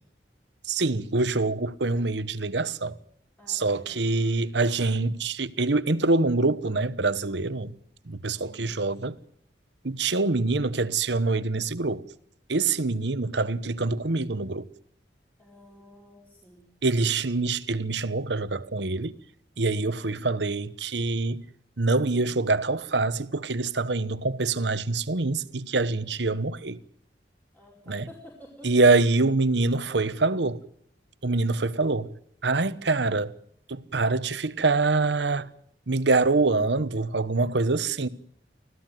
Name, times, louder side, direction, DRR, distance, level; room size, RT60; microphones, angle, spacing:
voice 1, 0.6-3.0 3.5-7.7 8.0-9.1 9.8-12.1 12.5-14.7 16.8-19.2 19.6-21.4 21.8-26.8 27.9-28.1 28.6-30.6 31.2-32.1 32.4-33.3 33.7-35.5 35.9-38.1, right 3 dB, 75° right, 1.1 m, -25 dB
voice 2, 3.4-4.3 8.3-8.9 15.4-16.7 27.5-28.7 29.9-30.5, left 1 dB, 10° left, 4.8 m, -51 dB
25.5 x 16.0 x 9.2 m
head